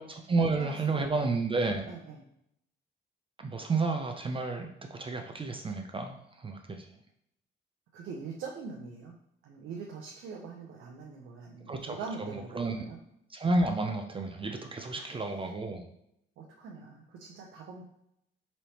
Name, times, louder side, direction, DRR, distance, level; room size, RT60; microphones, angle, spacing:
voice 1, 0.0-1.9 3.4-6.9 11.7-12.7 13.3-15.9, right 3 dB, 25° right, 4 dB, 0.4 m, -31 dB
voice 2, 1.9-2.2 7.9-9.1 9.4-13.0 15.0-15.1 16.4-17.8, right 5 dB, 80° right, 0 dB, 0.6 m, -43 dB
4.1 x 3.2 x 2.8 m, 0.77 s
cardioid pair, 90°, 20 cm